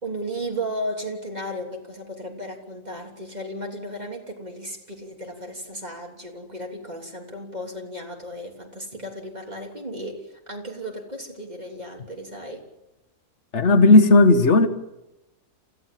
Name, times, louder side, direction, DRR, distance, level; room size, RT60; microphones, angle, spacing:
voice 1, 0.0-12.7, equal, 25° right, 1 dB, 3.4 m, -34 dB
voice 2, 13.5-14.7, left 2 dB, 50° left, 9 dB, 1.9 m, -14 dB
28.0 x 15.5 x 7.6 m, 0.95 s
omnidirectional pair, 1.6 m